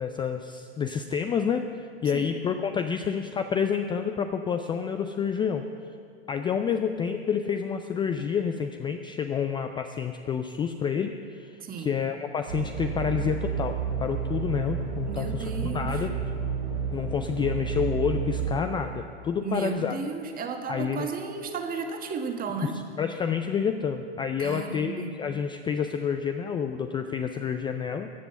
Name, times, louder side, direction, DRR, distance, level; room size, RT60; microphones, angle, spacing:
voice 1, 0.0-5.6 6.3-16.1 16.9-20.0 20.7-21.1 22.6-22.7 23.0-28.1, left 7 dB, 15° left, 7 dB, 0.4 m, -29 dB
voice 2, 11.6-11.9 15.0-16.1 19.4-22.8 24.4-25.2, right 5 dB, 25° right, 5 dB, 1.5 m, -34 dB
sound 1, 12.5-18.6, right 6 dB, 85° right, 4.2 m, -31 dB
15.0 x 8.1 x 6.9 m, 2.3 s
hypercardioid pair, 110°, 31 cm